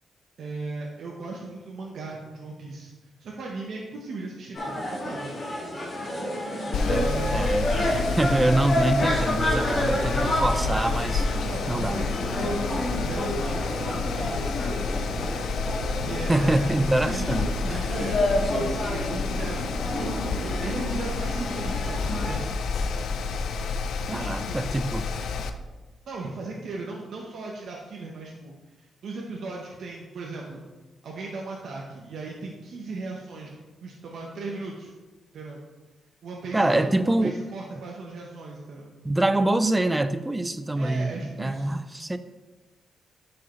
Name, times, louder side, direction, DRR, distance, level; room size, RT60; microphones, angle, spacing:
voice 1, 0.4-5.3 6.9-7.4 9.7-10.0 10.4-10.8 11.3-14.6 15.9-16.7 17.0-17.3 17.7-22.5 24.1-24.7 26.1-30.7 31.0-33.5 33.8-34.9 35.3-35.6 36.2-38.9 40.7-41.8, right 3 dB, 65° right, -2 dB, 0.9 m, -37 dB
sound 1, 4.5-22.4, left 1 dB, 30° left, 1.9 m, -29 dB
Mechanical fan, 6.7-25.5, left 4 dB, 80° left, 0.5 m, -29 dB
voice 2, 6.9-11.3 11.7-12.0 16.3-17.9 24.1-25.1 36.5-37.4 39.0-42.2, right 1 dB, 15° right, 12 dB, 0.4 m, -25 dB
10.5 x 4.8 x 3.1 m, 1.2 s
cardioid pair, 125°, 0 cm